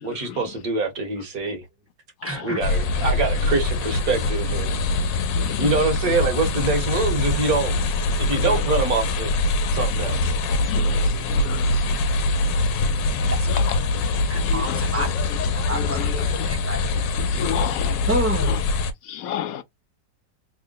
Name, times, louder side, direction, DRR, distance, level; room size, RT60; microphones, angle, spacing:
voice 1, 0.0-1.6 2.4-4.8 5.6-7.8 8.2-9.3 9.7-10.3, right 3 dB, 55° right, 1.6 m, -24 dB
voice 2, 2.2-2.7 13.4-13.5 13.7-13.8 14.2-15.2 15.5-16.9 18.1-18.6, right 2 dB, 10° right, 0.9 m, -29 dB
sound 1, 2.6-18.9, left 2 dB, 90° left, 1.4 m, -23 dB
voice 3, 5.4-5.7 10.7-11.0 11.4-11.6 14.5-14.8 17.3-18.1 19.1-19.6, left 11 dB, 70° left, 0.8 m, -30 dB
3.6 x 2.1 x 3.8 m
omnidirectional pair, 1.9 m